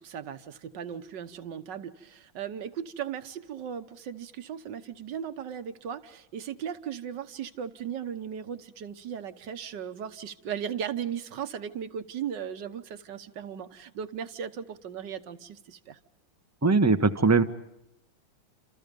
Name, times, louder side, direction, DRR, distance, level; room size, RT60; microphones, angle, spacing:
voice 1, 0.0-16.0, right 8 dB, 60° right, 11 dB, 1.7 m, -37 dB
voice 2, 16.6-17.4, right 4 dB, 15° right, 10 dB, 0.7 m, -20 dB
29.0 x 27.5 x 5.3 m, 0.80 s
omnidirectional pair, 2.3 m